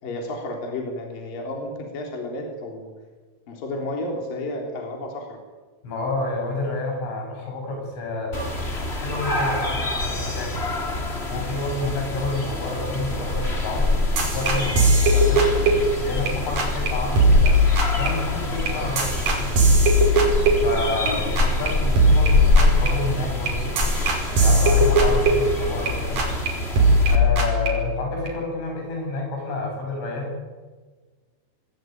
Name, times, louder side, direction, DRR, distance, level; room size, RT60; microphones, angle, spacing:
voice 1, 0.0-2.9 3.5-5.4 21.0-21.2, left 1 dB, 50° left, 2 dB, 4.9 m, -32 dB
voice 2, 5.8-10.7 11.3-13.9 14.3-17.6 18.0-19.5 20.6-23.8 24.4-26.2 27.1-30.3, left 2 dB, 75° left, 1 dB, 9.7 m, -29 dB
sound 1, 8.3-27.2, left 2 dB, 15° left, 2.3 m, -25 dB
sound 2, 14.2-16.3 16.6-16.9 17.2-21.1 21.4-21.7 22.0-25.9 26.2-26.5 26.8-28.3, equal, 45° right, 6.7 m, -20 dB
27.0 x 19.5 x 9.4 m, 1.4 s
omnidirectional pair, 5.6 m